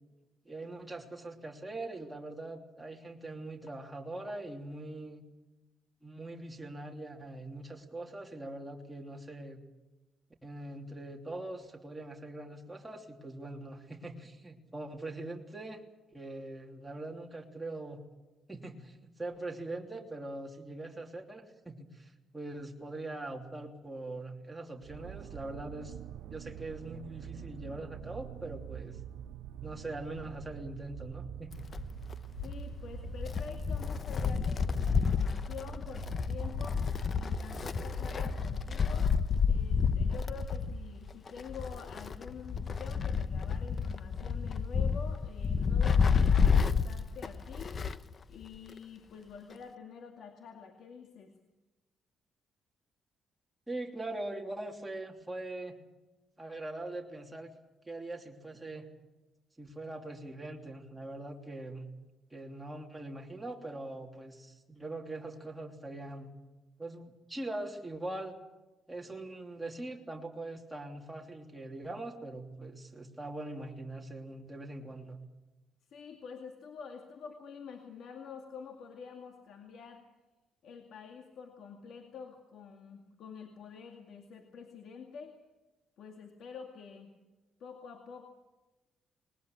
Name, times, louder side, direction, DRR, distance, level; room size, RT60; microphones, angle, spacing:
voice 1, 0.4-5.2 6.0-9.6 10.4-15.8 16.1-18.0 18.5-26.0 26.3-29.0 29.6-31.7 53.7-55.8 56.4-57.5 57.9-58.9 59.6-61.9 62.3-66.4 66.8-68.3 68.9-75.2, right 2 dB, 10° right, 1 dB, 3.1 m, -42 dB
sound 1, 24.8-41.1, right 11 dB, 85° right, 0.8 m, -45 dB
Wind, 31.5-48.1 48.4-48.5 49.5-49.6, left 6 dB, 40° left, 1.0 m, -30 dB
voice 2, 32.4-36.9 37.1-39.2 39.5-47.8 48.3-51.3 75.8-80.0 80.6-85.4 86.0-87.1 87.6-88.3, left 6 dB, 70° left, 4 dB, 2.2 m, -47 dB
20.5 x 20.0 x 8.7 m, 1.1 s
cardioid pair, 90°, 0 cm